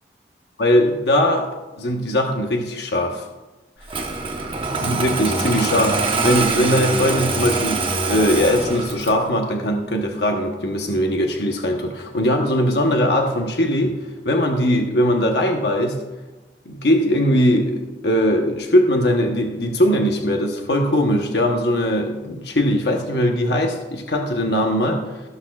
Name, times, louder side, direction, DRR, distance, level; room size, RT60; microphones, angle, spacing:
voice 1, 0.6-1.5 1.8-3.3 4.8-14.0 14.2-16.0 16.7-25.0, equal, 70° left, 2 dB, 1.0 m, -20 dB
Engine starting, 3.9-9.3, right 3 dB, 30° right, 1.0 m, -24 dB
14.0 x 12.0 x 2.4 m, 1.1 s
head